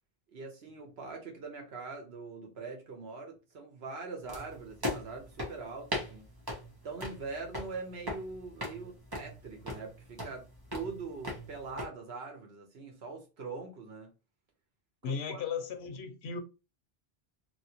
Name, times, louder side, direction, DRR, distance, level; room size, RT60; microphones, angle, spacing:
voice 1, 0.3-6.3 6.8-10.4 10.7-14.1 15.0-15.4, right 4 dB, 80° right, 1.2 m, -43 dB
sound 1, 4.3-11.9, left 1 dB, 25° right, 1.0 m, -40 dB
voice 2, 15.0-16.4, left 6 dB, 90° left, 0.9 m, -36 dB
3.1 x 2.7 x 2.8 m
omnidirectional pair, 1.0 m